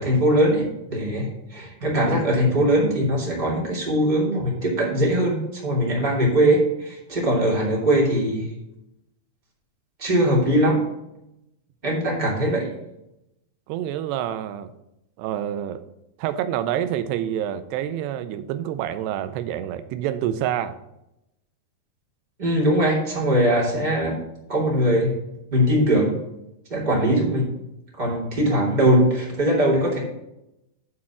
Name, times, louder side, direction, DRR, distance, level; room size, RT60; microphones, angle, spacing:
voice 1, 0.0-8.5 10.0-10.8 11.8-12.7 22.4-24.2 24.5-25.1 25.5-26.2 26.7-27.5 28.0-30.0, right 1 dB, 15° right, -4 dB, 2.4 m, -21 dB
voice 2, 13.7-14.7 15.2-15.8 16.2-20.8, right 11 dB, 90° right, 11 dB, 2.7 m, -27 dB
9.8 x 4.3 x 7.1 m, 0.86 s
omnidirectional pair, 4.7 m